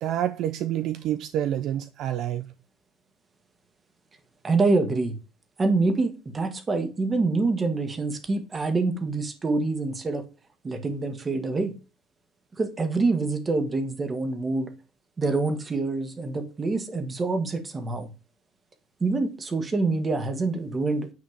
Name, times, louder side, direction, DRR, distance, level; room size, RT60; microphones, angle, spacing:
voice 1, 0.0-2.5, right 11 dB, 50° right, 0.6 m, -28 dB
voice 2, 4.4-5.2 5.6-10.3 10.6-11.7 12.6-14.7 15.2-18.1 19.0-21.1, right 3 dB, 15° right, 1.5 m, -26 dB
9.5 x 4.3 x 7.3 m
cardioid pair, 165°, 0 cm